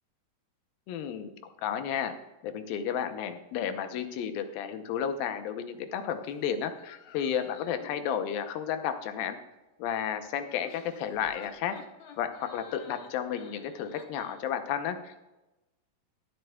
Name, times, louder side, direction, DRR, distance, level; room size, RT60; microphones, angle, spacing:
voice 1, 0.9-1.3 1.6-2.1 2.4-9.4 9.8-11.8 12.2-15.2, left 8 dB, 85° left, 8 dB, 2.6 m, -32 dB
sound 1, 6.8-8.1 10.4-14.4, left 7 dB, 65° left, 2.1 m, -51 dB
22.0 x 7.7 x 2.3 m, 1.0 s
omnidirectional pair, 4.1 m